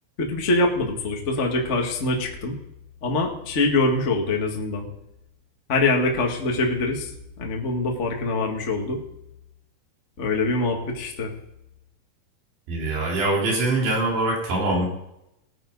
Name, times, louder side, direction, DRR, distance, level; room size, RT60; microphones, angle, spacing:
voice 1, 0.2-2.5 3.0-4.9 5.7-9.0 10.2-11.3, left 2 dB, 35° left, 1 dB, 1.1 m, -24 dB
voice 2, 12.7-14.9, right 2 dB, 90° right, -3 dB, 6.0 m, -23 dB
19.5 x 9.7 x 4.0 m, 0.82 s
omnidirectional pair, 4.6 m